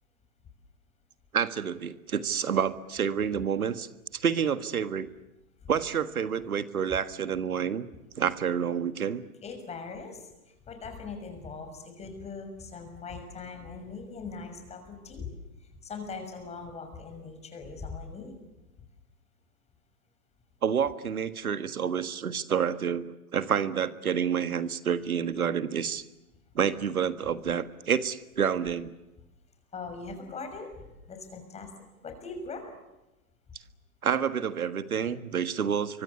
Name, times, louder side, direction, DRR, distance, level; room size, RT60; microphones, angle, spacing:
voice 1, 1.3-5.1 5.7-7.9 8.2-9.2 20.6-26.0 26.6-28.9 34.0-36.0, right 7 dB, 80° right, 12 dB, 1.8 m, -28 dB
voice 2, 9.4-15.3 15.6-18.4 29.7-32.8, left 4 dB, 15° left, 6 dB, 6.2 m, -41 dB
28.0 x 24.5 x 8.4 m, 0.98 s
hypercardioid pair, 130°, 43 cm